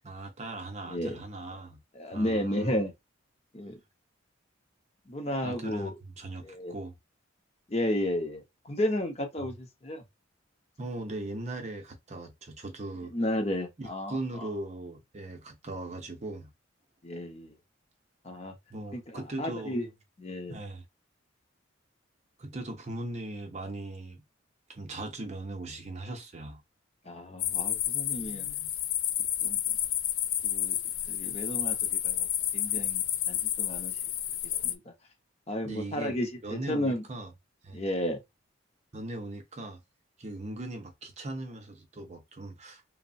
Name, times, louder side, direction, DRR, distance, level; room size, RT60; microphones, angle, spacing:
voice 1, 0.0-1.8 2.1-2.8 5.4-5.9 6.2-6.9 9.4-9.5 10.8-13.1 13.8-16.5 18.7-19.8 20.5-20.8 22.4-24.2 24.7-26.6 35.6-36.2 36.4-37.3 37.6-37.8 38.9-39.8 40.2-42.8, right 2 dB, 35° right, 0.5 m, -39 dB
voice 2, 0.9-1.2 1.9-2.9 3.5-3.8 5.1-6.0 6.4-6.7 7.7-10.0 13.1-14.5 17.0-17.5 18.2-18.5 18.9-19.9 20.2-20.6 27.0-28.5 29.2-29.6 30.4-30.8 31.1-34.0 34.6-34.9 35.5-37.0 37.7-38.2, left 1 dB, 30° left, 0.6 m, -33 dB
sound 1, 27.4-34.7, left 11 dB, 70° left, 0.3 m, -30 dB
3.0 x 2.0 x 2.6 m
head